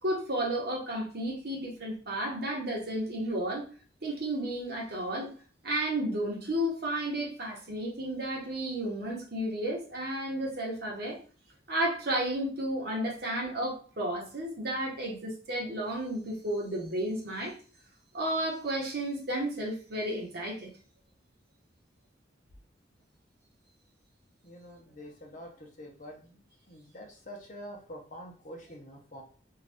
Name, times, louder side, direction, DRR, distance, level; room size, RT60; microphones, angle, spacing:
voice 1, 0.0-3.7 4.0-5.3 5.6-11.2 11.7-17.5 18.1-20.7, right 1 dB, 60° right, -2 dB, 1.1 m, -32 dB
voice 2, 24.4-26.3 26.7-29.2, equal, 45° left, 0 dB, 0.8 m, -46 dB
2.7 x 2.5 x 3.4 m, 0.39 s
head